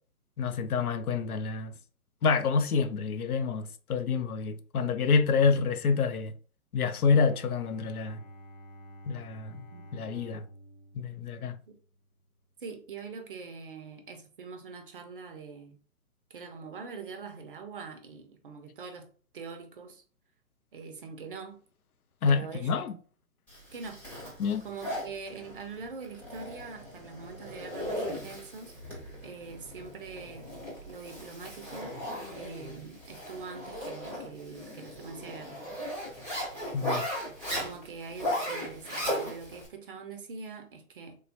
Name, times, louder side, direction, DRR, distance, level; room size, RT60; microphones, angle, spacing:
voice 1, 0.4-1.7 2.2-6.3 6.7-8.2 9.1-9.6 9.9-10.4 10.9-11.6 22.2-22.9 24.4-24.6 36.7-37.1, left 5 dB, 75° left, 0.6 m, -27 dB
Bowed string instrument, 6.9-12.2, equal, 40° left, 0.9 m, -51 dB
voice 2, 12.6-15.8 16.3-20.0 20.7-21.6 22.3-22.9 23.7-24.0 24.6-30.5 30.9-32.0 32.3-35.6 37.6-41.2, right 4 dB, 40° right, 0.5 m, -43 dB
Zipper (clothing), 23.5-39.7, equal, 5° left, 0.6 m, -37 dB
3.3 x 2.2 x 2.7 m
figure-of-eight pair, 130°, 44 cm